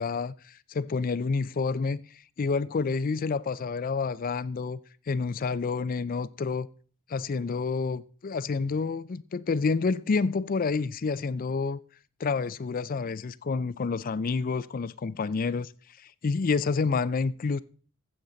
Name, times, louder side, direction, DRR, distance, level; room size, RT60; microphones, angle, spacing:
voice 1, 0.0-2.0 2.4-4.8 5.1-6.7 7.1-11.8 12.2-15.7 16.0-17.6, left 4 dB, 40° left, 0.4 m, -29 dB
14.5 x 7.7 x 3.9 m
head